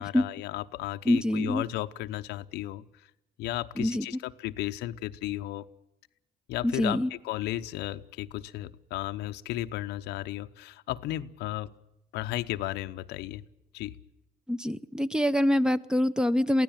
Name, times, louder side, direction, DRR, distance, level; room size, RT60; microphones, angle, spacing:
voice 1, 0.0-2.8 3.4-5.7 6.5-11.7 12.1-13.4 13.7-13.9, left 15 dB, 90° left, 10 dB, 0.9 m, -34 dB
voice 2, 1.1-1.6 3.8-4.0 6.6-7.1 14.5-16.6, left 1 dB, 5° right, 13 dB, 0.7 m, -25 dB
23.0 x 16.0 x 9.0 m, 0.85 s
cardioid pair, 110°, 17 cm